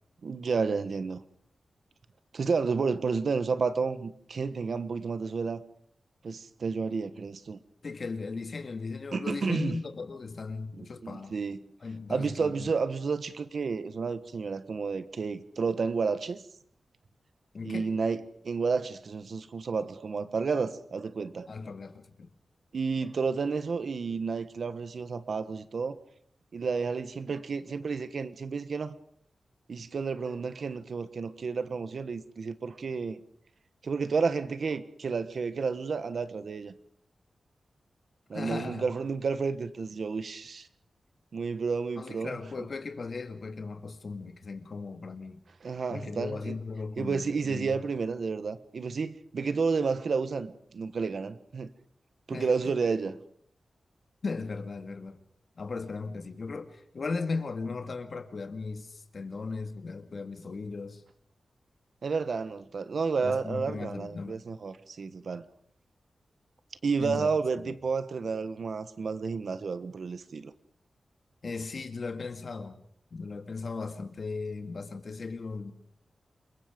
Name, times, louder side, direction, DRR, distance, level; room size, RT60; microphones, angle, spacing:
voice 1, 0.2-1.2 2.3-5.6 6.2-7.6 9.1-9.8 11.0-11.6 12.1-16.4 17.6-18.2 18.4-21.5 22.7-25.9 26.5-29.0 29.7-33.2 33.8-36.7 38.3-40.7 41.3-42.4 45.6-46.5 47.0-51.7 52.3-53.2 62.0-65.4 66.8-70.5, right 5 dB, 65° right, 1.4 m, -31 dB
voice 2, 7.8-11.3 11.8-12.7 17.5-17.9 21.5-22.3 38.3-38.9 42.0-45.4 45.9-47.8 52.3-52.5 54.2-55.2 55.6-61.0 63.2-64.4 67.0-67.3 71.4-72.8 73.1-75.7, left 4 dB, 50° left, 2.2 m, -37 dB
29.0 x 22.0 x 5.2 m
wide cardioid pair, 115°, 0 cm